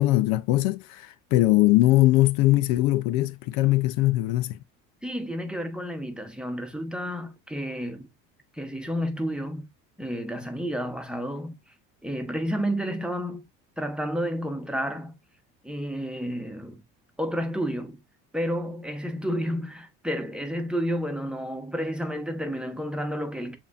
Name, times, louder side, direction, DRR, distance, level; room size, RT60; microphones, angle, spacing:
voice 1, 0.0-4.6, left 17 dB, 75° left, 0.6 m, -21 dB
voice 2, 5.0-8.1 8.5-9.7 10.0-11.5 12.0-13.5 13.8-15.2 15.6-16.8 17.2-18.0 18.3-23.6, equal, 5° right, 1.0 m, -31 dB
6.9 x 2.7 x 2.3 m
supercardioid pair, 85°, 36 cm